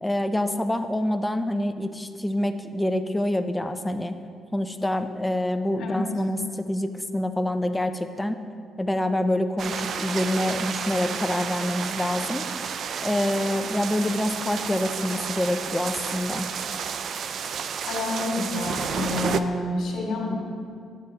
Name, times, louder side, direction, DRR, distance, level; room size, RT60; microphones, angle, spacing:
voice 1, 0.0-4.1 4.5-8.4 8.8-12.5 13.0-16.5, left 1 dB, 10° left, 8 dB, 0.5 m, -26 dB
sound 1, 9.6-19.4, right 7 dB, 60° right, 0.3 m, -31 dB
voice 2, 17.9-20.3, left 2 dB, 70° left, -1 dB, 1.9 m, -28 dB
10.5 x 7.9 x 2.8 m, 2.2 s
cardioid pair, 90°, 0 cm